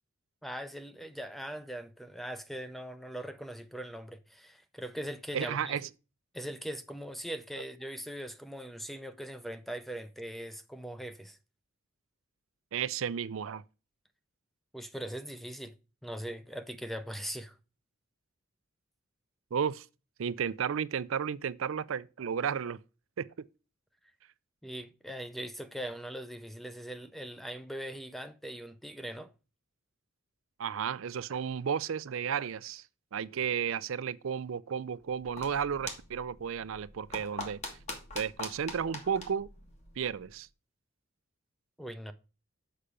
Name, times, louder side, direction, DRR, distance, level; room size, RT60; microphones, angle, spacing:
voice 1, 0.4-5.8 6.3-11.4 14.7-15.7 16.0-17.5 24.6-29.3 41.8-42.1, right 1 dB, ahead, 0.5 m, -41 dB
voice 2, 5.3-5.9 12.7-13.6 19.5-19.9 20.2-22.8 23.2-23.3 30.6-32.9 33.1-37.8 38.1-39.5 40.0-40.5, right 7 dB, 75° right, 0.4 m, -33 dB
sound 1, 35.0-40.4, left 2 dB, 35° left, 1.5 m, -44 dB
6.8 x 5.7 x 4.9 m
head